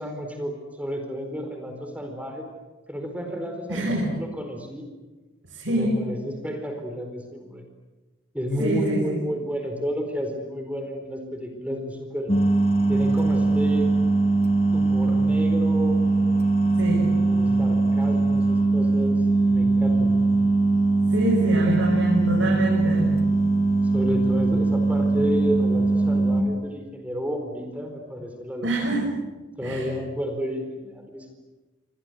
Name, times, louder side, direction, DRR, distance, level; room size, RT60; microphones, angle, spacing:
voice 1, 0.0-2.5 2.9-4.9 5.6-7.6 8.3-12.3 12.9-13.9 14.7-16.0 17.2-20.2 23.9-28.7 29.6-31.3, equal, 5° right, 4 dB, 4.4 m, -31 dB
voice 2, 3.7-4.1 5.5-6.0 8.6-9.2 16.8-17.1 21.1-23.2 28.6-29.1 29.6-29.9, right 1 dB, 65° right, -3 dB, 7.1 m, -25 dB
sound 1, 12.3-26.4, right 3 dB, 30° left, 2.0 m, -21 dB
29.5 x 25.0 x 8.1 m, 1.2 s
head